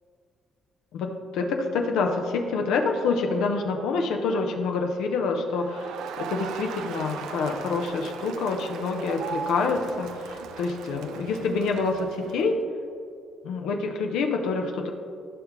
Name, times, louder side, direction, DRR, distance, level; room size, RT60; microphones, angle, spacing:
voice 1, 0.9-5.9 6.2-12.6 13.4-14.9, left 4 dB, 90° left, 3 dB, 0.9 m, -27 dB
Crowd, 5.5-12.6, right 7 dB, 90° right, 0.4 m, -38 dB
14.5 x 5.2 x 3.2 m, 2.3 s
cardioid pair, 90°, 0 cm